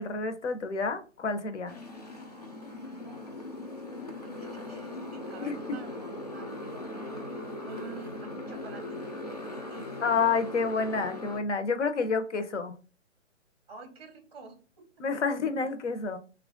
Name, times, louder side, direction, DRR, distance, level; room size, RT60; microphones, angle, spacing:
voice 1, 0.0-1.7 5.4-5.6 10.0-12.7 15.0-16.2, left 4 dB, 65° left, 0.8 m, -29 dB
Motorcycle, 1.7-11.4, left 2 dB, 35° left, 0.4 m, -39 dB
voice 2, 4.2-6.5 7.6-9.0 9.7-9.9 10.3-10.4 13.7-14.6, right 4 dB, 30° right, 0.6 m, -47 dB
3.1 x 2.4 x 3.7 m
hypercardioid pair, 160°, 38 cm